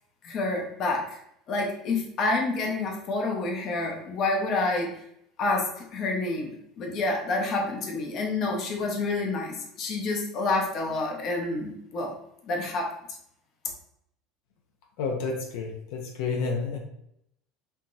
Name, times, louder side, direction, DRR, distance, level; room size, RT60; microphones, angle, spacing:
voice 1, 0.2-1.2 1.5-4.9 5.4-12.1 12.5-12.9, left 3 dB, 40° left, 1 dB, 0.9 m, -28 dB
voice 2, 15.0-16.8, left 4 dB, 75° left, 2 dB, 0.8 m, -30 dB
5.7 x 2.9 x 2.6 m, 0.75 s
cardioid pair, 145°, 0 cm